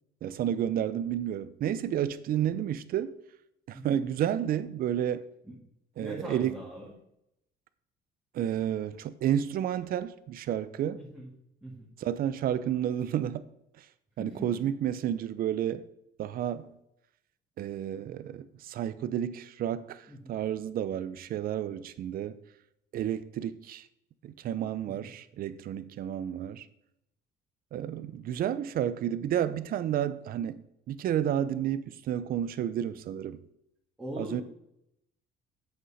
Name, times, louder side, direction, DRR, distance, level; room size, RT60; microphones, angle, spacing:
voice 1, 0.2-3.2 3.7-5.3 6.0-6.6 8.3-11.0 12.0-13.5 13.8-13.9 14.2-15.9 16.2-16.7 17.6-22.4 22.9-23.8 24.2-26.7 27.7-30.6 30.9-33.4 34.2-34.4, right 10 dB, 60° right, 0.6 m, -31 dB
voice 2, 6.0-6.9 11.0-11.3 11.6-11.9 14.2-14.6 20.1-20.4 24.9-25.1 34.0-34.4, equal, 10° right, 2.1 m, -41 dB
8.2 x 8.1 x 4.2 m
cardioid pair, 110°, 17 cm